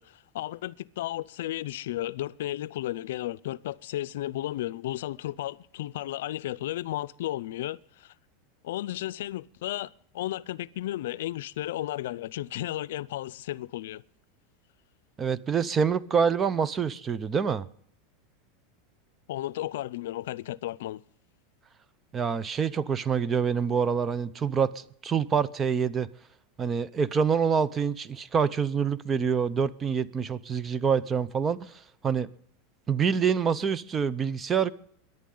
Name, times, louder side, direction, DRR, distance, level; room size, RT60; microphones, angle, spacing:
voice 1, 0.0-8.1 8.6-14.0 19.3-21.0, left 14 dB, 80° left, 0.5 m, -34 dB
voice 2, 15.2-17.6 22.1-26.1 26.6-32.3 32.9-34.7, right 6 dB, 20° right, 0.6 m, -26 dB
23.0 x 10.5 x 3.9 m
supercardioid pair, 135°, 0 cm